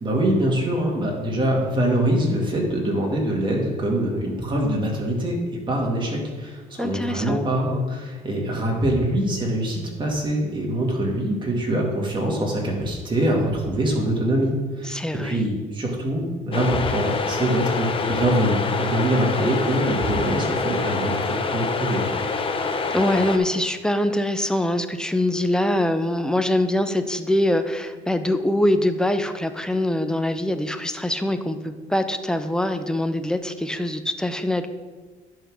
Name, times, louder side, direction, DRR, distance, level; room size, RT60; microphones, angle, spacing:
voice 1, 0.0-5.4 5.7-22.1, right 1 dB, 30° right, -1 dB, 2.0 m, -24 dB
voice 2, 6.8-7.4 14.9-15.4 22.9-34.7, left 1 dB, 5° left, 9 dB, 0.6 m, -23 dB
sound 1, 16.5-23.4, left 4 dB, 30° left, 0.8 m, -26 dB
9.8 x 3.8 x 6.2 m, 1.3 s
cardioid pair, 110°, 17 cm